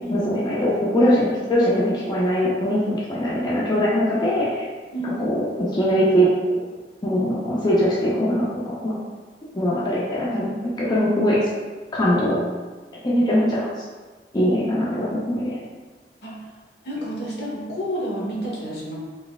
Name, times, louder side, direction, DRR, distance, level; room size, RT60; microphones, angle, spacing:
voice 1, 0.1-4.6 5.0-6.5 7.0-9.0 9.5-11.5 11.9-12.4 13.0-13.7 14.3-15.6, equal, 25° left, -7 dB, 0.5 m, -21 dB
voice 2, 16.8-18.9, equal, 65° left, -4 dB, 1.0 m, -29 dB
4.1 x 3.4 x 2.3 m, 1.4 s
head